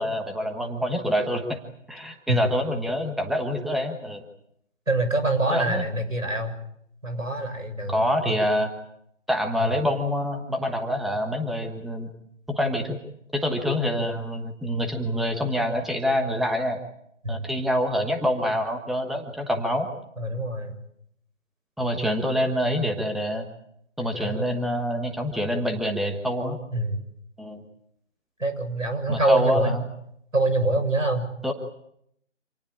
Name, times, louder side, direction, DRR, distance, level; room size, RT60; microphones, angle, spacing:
voice 1, 0.0-1.6 1.9-4.2 5.5-5.8 7.9-8.7 9.3-12.1 12.5-13.0 13.3-16.8 17.3-19.9 21.8-23.5 24.0-26.6 27.4-27.6 29.1-29.9 31.4-31.5, equal, ahead, 4 dB, 1.3 m, -26 dB
voice 2, 4.9-6.5 7.0-8.4 17.2-17.4 20.2-20.7 24.0-24.7 26.7-27.0 28.4-29.8 30.3-31.3, right 2 dB, 90° right, 8 dB, 7.1 m, -25 dB
27.0 x 19.0 x 8.7 m, 0.74 s
figure-of-eight pair, 150°, 38 cm